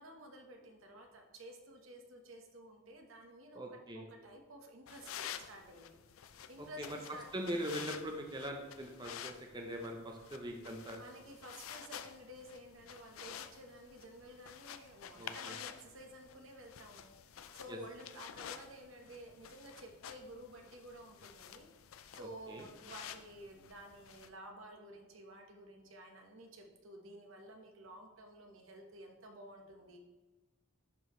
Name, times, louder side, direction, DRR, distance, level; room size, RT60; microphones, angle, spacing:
voice 1, 0.0-3.6 3.9-6.0 6.5-7.3 10.7-17.1 17.5-21.7 22.1-30.0, right 1 dB, 70° right, 3 dB, 1.2 m, -53 dB
voice 2, 3.5-4.1 6.8-7.0 7.3-11.0 15.2-15.5 17.7-17.8 22.2-22.6, equal, 20° right, 2 dB, 0.7 m, -42 dB
sound 1, 4.9-24.3, left 9 dB, 80° left, 0.4 m, -50 dB
10.5 x 4.7 x 3.1 m, 1.2 s
head